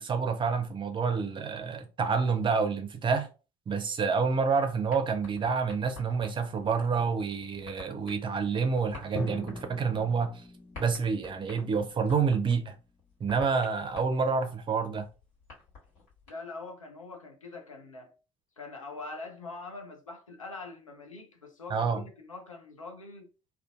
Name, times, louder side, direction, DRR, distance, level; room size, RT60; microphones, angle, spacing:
voice 1, 0.0-3.3 3.7-10.4 10.8-12.7 13.2-15.1 21.7-22.0, right 5 dB, 30° right, 0.6 m, -28 dB
sound 1, 4.9-16.3, left 4 dB, 65° left, 1.4 m, -51 dB
Drum, 9.1-12.9, right 1 dB, 45° left, 1.3 m, -41 dB
voice 2, 16.3-18.1 18.6-23.3, left 3 dB, 85° left, 0.5 m, -43 dB
2.5 x 2.2 x 2.4 m
figure-of-eight pair, 50°, 16 cm